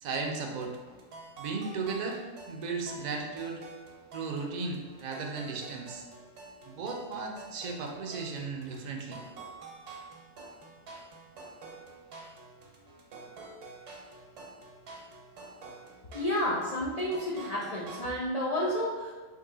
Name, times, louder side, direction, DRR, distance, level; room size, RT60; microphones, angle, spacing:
voice 1, 0.0-0.7 1.4-2.2 2.5-3.6 4.1-6.0 6.6-9.2, right 4 dB, 50° right, 1 dB, 0.5 m, -35 dB
sound 1, 0.6-18.1, right 3 dB, 75° right, 1.1 m, -48 dB
voice 2, 16.1-19.1, left 1 dB, 75° left, -5 dB, 0.3 m, -30 dB
3.7 x 2.7 x 3.8 m, 1.3 s
omnidirectional pair, 1.3 m